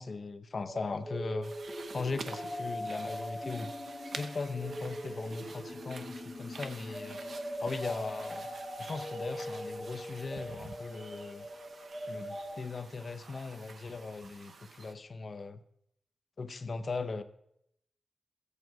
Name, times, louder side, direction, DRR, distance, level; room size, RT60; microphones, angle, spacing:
voice 1, 0.0-1.5 1.9-3.7 4.1-7.2 7.6-8.5 8.8-11.5 12.1-15.6 16.4-17.2, left 4 dB, 40° left, 10 dB, 0.6 m, -39 dB
sound 1, 0.7-12.5, equal, 10° right, 4.4 m, -41 dB
sound 2, 1.4-14.9, right 4 dB, 55° right, 0.8 m, -49 dB
15.0 x 8.3 x 4.6 m, 0.76 s
wide cardioid pair, 165°, 0 cm